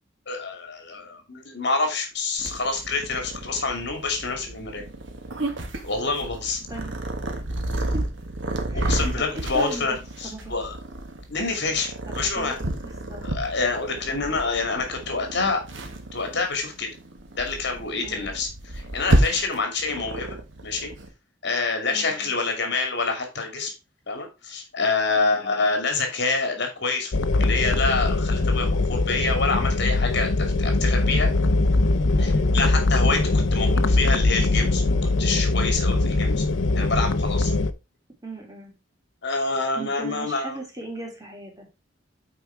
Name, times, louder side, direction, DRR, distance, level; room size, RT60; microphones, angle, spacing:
voice 1, 0.3-4.8 5.8-6.6 8.7-9.9 10.2-10.7 11.3-12.6 13.2-15.6 16.1-16.9 17.4-18.5 18.7-20.4 20.6-20.9 21.4-23.7 24.1-31.3 32.2-36.4 36.7-37.5 39.2-40.6, left 3 dB, 65° left, 4 dB, 2.6 m, -27 dB
Purr, 2.4-21.1, right 1 dB, 80° right, 1.6 m, -30 dB
voice 2, 6.7-7.0 7.9-8.0 8.7-10.0 10.2-10.5 12.1-13.2 18.0-18.3 21.9-22.3 25.2-25.6 32.1-32.4 38.2-38.7 39.4-41.7, right 1 dB, 20° right, 0 dB, 2.9 m, -38 dB
sound 1, 27.1-37.7, left 2 dB, 85° left, 0.6 m, -21 dB
8.6 x 4.6 x 4.6 m, 0.27 s
head